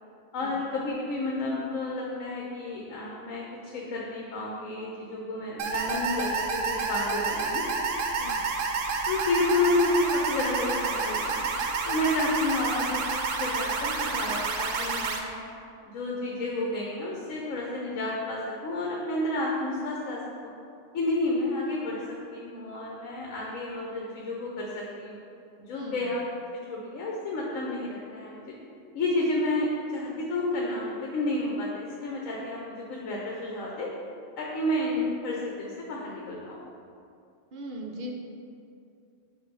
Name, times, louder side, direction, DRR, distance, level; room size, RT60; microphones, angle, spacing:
voice 1, 0.3-7.7 9.1-11.4 11.9-13.0 13.4-15.4 15.9-20.5 20.9-25.2 25.7-26.2 26.7-28.5 28.9-33.9 34.4-36.6, left 2 dB, 80° left, -3 dB, 1.1 m, -30 dB
sound 1, 5.6-15.2, right 4 dB, 75° right, 1.0 m, -29 dB
voice 2, 25.7-26.1 37.5-38.1, equal, 50° right, 0 dB, 0.6 m, -39 dB
7.2 x 2.7 x 5.2 m, 2.5 s
omnidirectional pair, 1.4 m